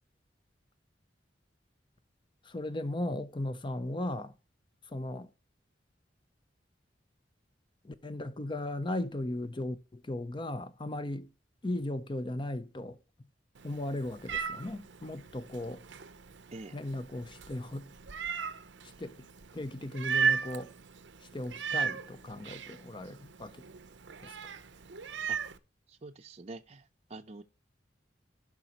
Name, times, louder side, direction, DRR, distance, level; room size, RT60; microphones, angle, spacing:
voice 1, 2.4-4.4 4.9-5.3 7.8-11.3 11.6-13.0 13.6-15.8 16.7-17.9 19.0-19.3 19.5-20.7 21.3-23.6 24.2-24.5, left 1 dB, 25° left, 0.6 m, -37 dB
Meow, 13.5-25.6, right 6 dB, 90° right, 0.8 m, -37 dB
voice 2, 25.9-27.4, right 2 dB, 35° right, 0.6 m, -46 dB
16.5 x 5.9 x 2.9 m
head